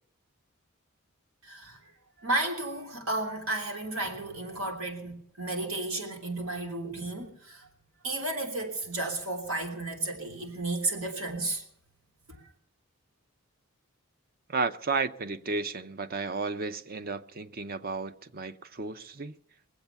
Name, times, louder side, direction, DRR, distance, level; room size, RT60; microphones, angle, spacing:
voice 1, 1.4-1.8 2.2-7.7 8.0-11.6, right 2 dB, 85° right, 3.2 m, -33 dB
voice 2, 14.5-19.4, right 4 dB, 45° right, 0.7 m, -33 dB
22.5 x 8.2 x 7.0 m
head